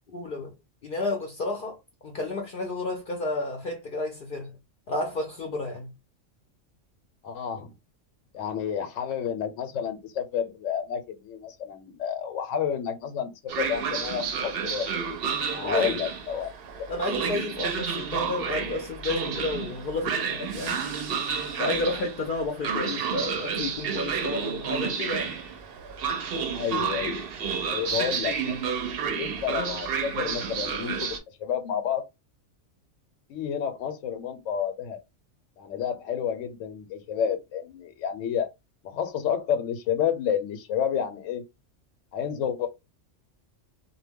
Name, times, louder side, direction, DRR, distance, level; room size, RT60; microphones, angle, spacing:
voice 1, 0.1-0.5 0.8-4.5 4.9-5.9 15.6-16.0 16.9-20.8 21.6-25.3, left 2 dB, 55° left, 0.6 m, -31 dB
voice 2, 7.2-7.7 8.3-15.1 15.5-16.5 26.5-27.3 27.7-32.1 33.3-35.0 35.6-38.5 38.8-41.4 42.1-42.7, left 8 dB, 90° left, 1.0 m, -30 dB
Train, 13.5-31.2, right 6 dB, 60° right, 0.7 m, -30 dB
2.2 x 2.1 x 3.4 m
omnidirectional pair, 1.3 m